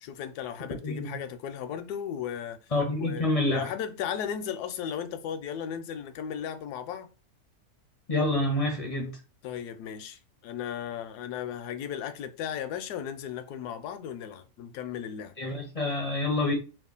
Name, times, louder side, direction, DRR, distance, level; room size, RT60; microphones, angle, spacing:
voice 1, 0.0-2.6 3.0-7.1 9.4-15.4, left 9 dB, 85° left, 1.1 m, -36 dB
voice 2, 0.8-1.1 2.7-3.7 8.1-9.2 15.4-16.5, left 2 dB, 45° left, 0.4 m, -27 dB
3.0 x 2.4 x 3.7 m
omnidirectional pair, 1.7 m